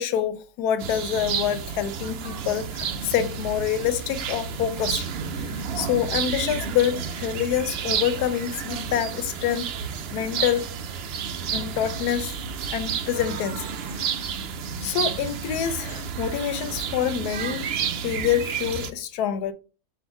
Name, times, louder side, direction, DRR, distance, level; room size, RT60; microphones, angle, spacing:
voice 1, 0.0-5.1 5.4-9.7 10.1-10.7 11.5-12.3 12.7-13.6 14.8-17.7 18.0-19.5, left 9 dB, 85° left, 1.1 m, -26 dB
sound 1, 0.8-18.9, right 7 dB, 85° right, 0.5 m, -31 dB
5.6 x 2.5 x 3.5 m
omnidirectional pair, 1.6 m